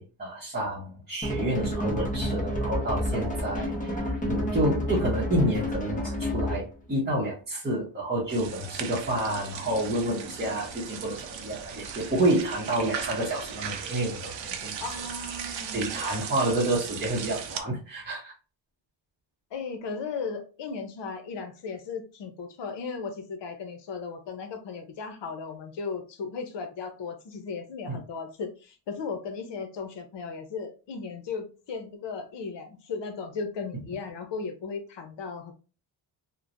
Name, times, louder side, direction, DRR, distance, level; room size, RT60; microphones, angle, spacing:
voice 1, 0.0-14.8 15.4-18.3 27.9-28.0, right 1 dB, 20° right, -7 dB, 0.8 m, -29 dB
sound 1, 1.2-6.7, equal, 15° left, 0.7 m, -29 dB
sound 2, 8.3-17.6, right 7 dB, 70° right, 0.7 m, -37 dB
voice 2, 14.8-15.8 19.5-35.5, left 5 dB, 65° left, 6 dB, 0.7 m, -36 dB
3.0 x 2.1 x 2.5 m, 0.35 s
cardioid pair, 120°, 47 cm